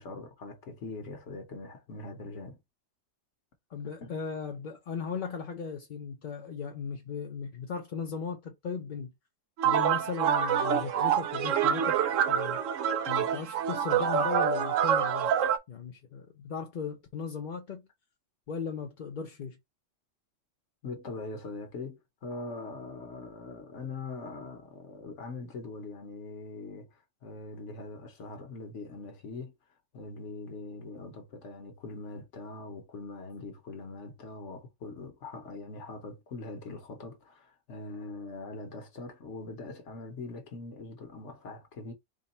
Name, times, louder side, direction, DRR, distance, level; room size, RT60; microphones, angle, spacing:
voice 1, 0.0-2.6 4.0-4.1 20.8-29.5 29.9-41.9, left 3 dB, 70° left, 1.2 m, -42 dB
voice 2, 3.7-9.1 9.6-11.9 12.3-12.6 13.1-15.3 15.7-17.8 18.5-19.6, left 6 dB, 50° left, 0.6 m, -37 dB
sound 1, 9.6-15.6, right 8 dB, 80° right, 1.0 m, -26 dB
3.7 x 2.3 x 4.0 m
omnidirectional pair, 1.3 m